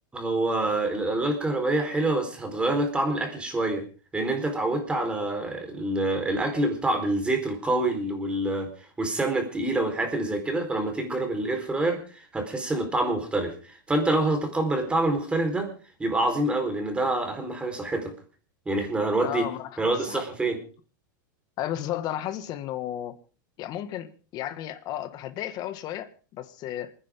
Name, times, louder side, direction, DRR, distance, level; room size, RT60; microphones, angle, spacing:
voice 1, 0.1-3.8 4.1-8.7 9.0-15.7 16.0-18.1 18.7-19.5 19.8-20.6, right 2 dB, 10° right, 4.2 m, -26 dB
voice 2, 19.2-19.8 20.1-20.2 21.6-23.2 23.6-26.9, left 12 dB, 40° left, 1.7 m, -33 dB
28.0 x 10.0 x 3.7 m
supercardioid pair, 130°, 11 cm